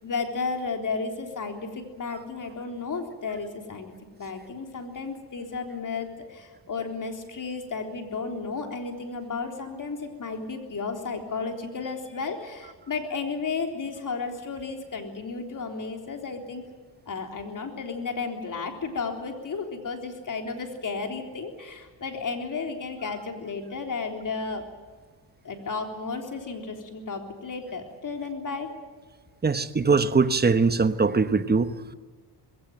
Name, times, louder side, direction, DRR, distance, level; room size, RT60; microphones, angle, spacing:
voice 1, 0.0-3.9 4.2-16.6 17.1-24.6 25.4-28.7, left 4 dB, 45° left, 4 dB, 3.8 m, -33 dB
voice 2, 29.4-31.9, right 4 dB, 25° right, 11 dB, 1.2 m, -22 dB
21.0 x 17.0 x 9.1 m, 1.5 s
cardioid pair, 85°, 42 cm